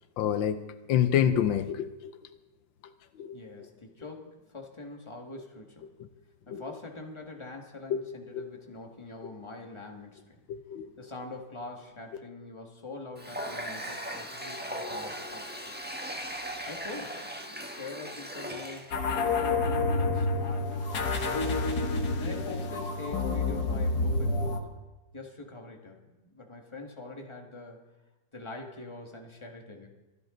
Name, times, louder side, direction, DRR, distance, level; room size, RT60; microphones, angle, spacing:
voice 1, 0.2-0.6 0.9-2.1 3.2-3.4 6.5-6.6 7.9-8.0 8.3-8.5 10.5-10.9, left 9 dB, 85° left, 10 dB, 1.5 m, -27 dB
voice 2, 3.3-5.9 6.5-10.4 11.0-15.8 16.7-21.4 22.2-24.7 25.1-27.8 28.3-29.9, left 2 dB, 15° left, 2 dB, 1.8 m, -44 dB
Water tap faucet, 13.2-19.0, equal, 5° right, 1.0 m, -38 dB
sound 1, 18.9-24.6, left 3 dB, 60° left, 1.8 m, -28 dB
25.0 x 11.0 x 3.9 m, 1.1 s
omnidirectional pair, 2.0 m